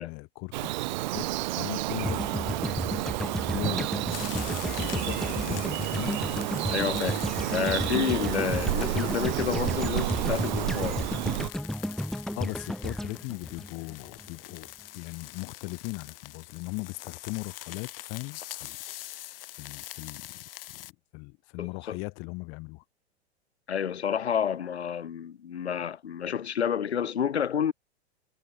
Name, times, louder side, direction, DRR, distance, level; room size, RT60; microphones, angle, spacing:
voice 1, 0.0-6.2 12.3-14.7 14.9-18.8 19.6-20.9 21.1-22.8, left 28 dB, 40° left, 2.2 m, -39 dB
Bird vocalization bird call bird song, 0.5-11.5, right 18 dB, 45° right, 0.4 m, -31 dB
sound 1, 2.0-14.3, equal, ahead, 2.7 m, -33 dB
sound 2, 4.1-20.9, left 15 dB, 55° left, 5.0 m, -44 dB
voice 2, 6.7-7.2 7.5-11.2 21.6-22.0 23.7-27.7, left 8 dB, 70° left, 2.6 m, -29 dB
figure-of-eight pair, 100°, 33 cm